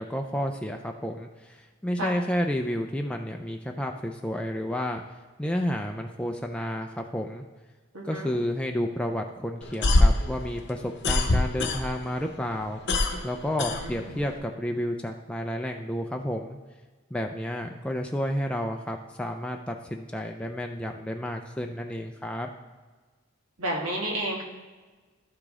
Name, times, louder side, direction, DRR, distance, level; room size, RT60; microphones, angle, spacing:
voice 1, 0.0-5.0 5.4-7.4 8.0-12.8 13.2-16.6 17.1-22.5, equal, 5° left, 2 dB, 0.3 m, -31 dB
voice 2, 7.9-8.3 13.7-14.2 23.6-24.4, right 1 dB, 80° right, -1 dB, 1.6 m, -31 dB
sound 1, 9.6-12.2 12.5-14.4, left 2 dB, 50° left, 0.8 m, -23 dB
12.0 x 5.0 x 3.6 m, 1.4 s
head